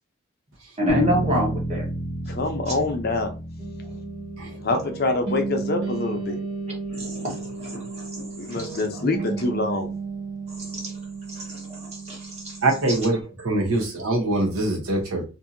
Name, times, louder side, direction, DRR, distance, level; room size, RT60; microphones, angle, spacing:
voice 1, 0.8-1.9 4.5-4.6 6.9-8.3 8.6-9.1 10.6-10.9 11.3-12.6, left 1 dB, 30° right, -2 dB, 1.1 m, -28 dB
sound 1, 0.9-5.2, right 1 dB, 5° left, 0.8 m, -31 dB
voice 2, 2.3-3.3 4.6-6.4 8.4-9.9, left 2 dB, 45° left, 4 dB, 0.6 m, -25 dB
sound 2, 3.6-13.2, right 4 dB, 55° right, 0.8 m, -34 dB
voice 3, 12.6-13.2 13.4-15.2, right 2 dB, 90° right, 1 dB, 0.9 m, -23 dB
2.7 x 2.6 x 2.5 m, 0.32 s
head